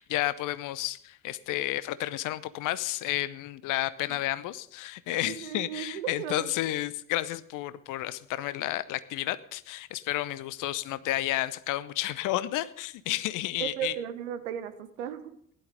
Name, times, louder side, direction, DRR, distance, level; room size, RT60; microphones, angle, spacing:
voice 1, 0.0-13.9, left 15 dB, 50° left, 16 dB, 0.8 m, -31 dB
voice 2, 5.2-6.5 13.6-15.4, right 10 dB, 70° right, 10 dB, 1.1 m, -35 dB
16.0 x 11.5 x 5.1 m, 0.65 s
figure-of-eight pair, 45°, 39 cm